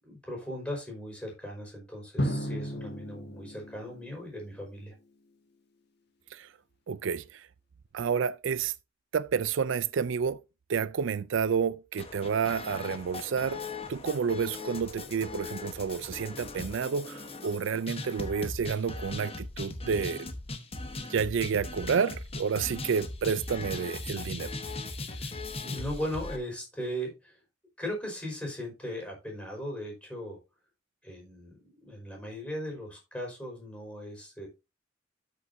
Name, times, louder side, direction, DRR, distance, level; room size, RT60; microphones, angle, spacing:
voice 1, 0.0-5.0 25.0-27.4 27.8-30.4 31.0-34.5, equal, 5° left, 5.2 m, -38 dB
Drum, 2.2-4.8, equal, 60° left, 1.8 m, -35 dB
voice 2, 6.9-7.5 7.9-8.7 9.1-10.4 10.7-13.6 13.9-20.3 21.1-24.6, right 6 dB, 75° right, 0.4 m, -30 dB
sound 1, 12.0-26.4, left 2 dB, 30° left, 1.2 m, -39 dB
13.0 x 6.8 x 2.7 m
head